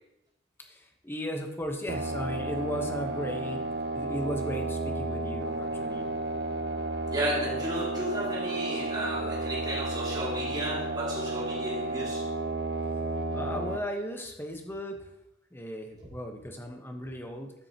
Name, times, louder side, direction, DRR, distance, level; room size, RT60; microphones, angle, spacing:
voice 1, 0.6-3.6 3.9-6.1 13.3-15.1 15.5-17.5, equal, 15° left, 3 dB, 1.1 m, -36 dB
sound 1, 1.9-13.8, right 2 dB, 75° right, 0.6 m, -32 dB
voice 2, 7.1-12.2, right 1 dB, 25° right, -4 dB, 2.7 m, -33 dB
13.0 x 6.3 x 3.0 m, 0.84 s
head